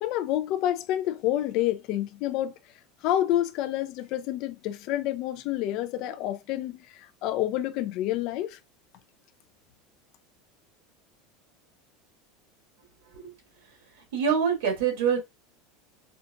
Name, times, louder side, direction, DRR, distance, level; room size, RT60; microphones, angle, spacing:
voice 1, 0.0-2.5 3.0-8.6, left 13 dB, 40° left, 0.4 m, -28 dB
voice 2, 14.1-15.2, right 7 dB, 85° right, 2.4 m, -25 dB
4.4 x 2.8 x 2.4 m
supercardioid pair, 180°, 0 cm